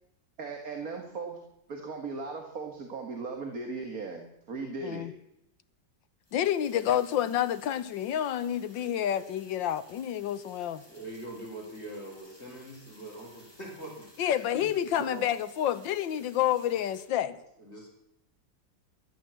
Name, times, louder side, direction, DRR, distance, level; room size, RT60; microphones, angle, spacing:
voice 1, 0.4-1.4 1.7-5.1 15.0-15.3, right 4 dB, 50° right, 3 dB, 2.1 m, -37 dB
voice 2, 4.8-5.1 6.3-10.8 14.2-17.4, left 10 dB, 75° left, 14 dB, 1.6 m, -29 dB
sound 1, 6.2-17.0, left 1 dB, 10° left, 5.9 m, -58 dB
voice 3, 10.9-14.7 17.3-17.9, right 1 dB, 35° left, -1 dB, 5.1 m, -43 dB
14.0 x 13.0 x 7.7 m, 0.83 s
omnidirectional pair, 2.1 m